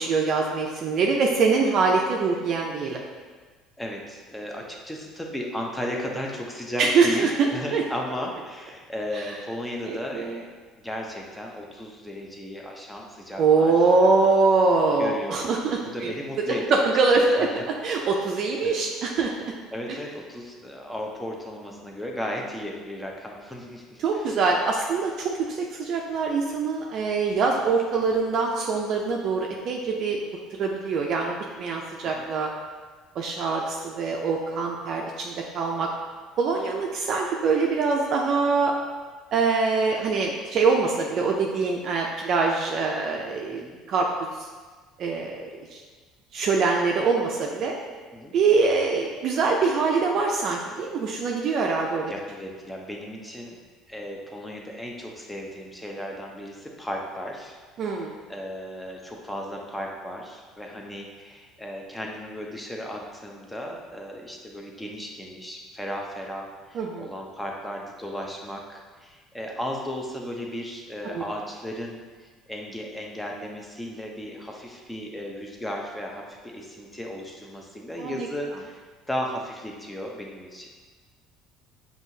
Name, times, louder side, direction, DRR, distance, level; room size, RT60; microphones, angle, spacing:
voice 1, 0.0-3.0 6.8-7.8 9.9-10.4 13.4-16.1 16.7-17.5 17.8-19.5 24.0-30.2 30.6-32.5 33.2-35.9 36.4-38.7 39.3-44.1 45.0-45.8 46.3-47.7 48.3-52.1 57.8-58.1 66.7-67.1 71.0-71.2 78.0-78.3, right 4 dB, 55° right, 0 dB, 0.4 m, -24 dB
voice 2, 3.8-10.5 10.8-13.7 14.0-14.4 15.0-17.5 18.6-18.8 19.7-24.4 32.0-32.3 43.5-43.8 48.1-48.3 52.1-53.6 53.9-57.6 57.9-78.8 79.1-80.7, equal, 5° left, 0 dB, 0.6 m, -35 dB
5.4 x 2.7 x 2.7 m, 1.4 s
cardioid pair, 110°, 0 cm